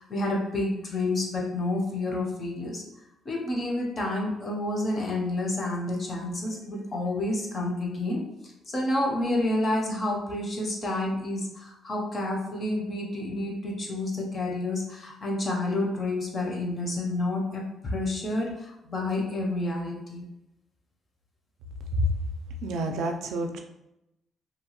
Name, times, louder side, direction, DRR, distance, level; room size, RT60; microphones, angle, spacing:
voice 1, 0.0-2.8 3.2-8.2 8.7-20.2, left 2 dB, 30° left, 0 dB, 0.5 m, -29 dB
voice 2, 22.6-23.6, equal, 85° right, 4 dB, 0.3 m, -28 dB
2.8 x 2.2 x 2.8 m, 0.88 s
cardioid pair, 155°, 0 cm